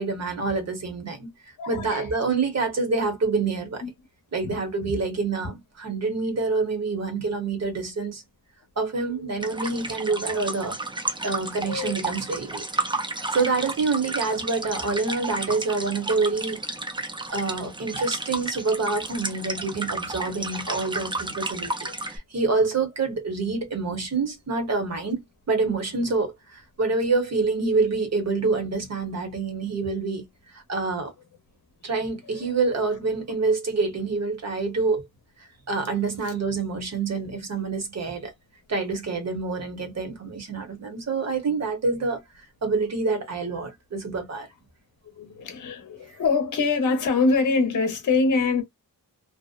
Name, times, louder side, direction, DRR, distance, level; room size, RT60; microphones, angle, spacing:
voice 1, 0.0-3.8 4.3-8.2 8.8-10.8 11.2-12.6 13.3-16.6 17.3-25.2 25.5-30.2 30.5-31.1 31.8-35.0 35.4-38.3 38.7-44.5 46.1-46.2, right 4 dB, 45° right, 0.9 m, -27 dB
voice 2, 1.6-2.1 3.8-3.9 4.4-4.9 9.0-9.3 10.3-10.5 11.7-12.0 21.9-22.0 26.0-26.1 31.8-31.9 32.3-32.5 36.2-36.3 45.2-48.6, left 4 dB, 50° left, 0.7 m, -25 dB
sound 1, 9.4-22.2, right 2 dB, 15° right, 0.4 m, -32 dB
2.6 x 2.0 x 2.3 m
wide cardioid pair, 170°, 38 cm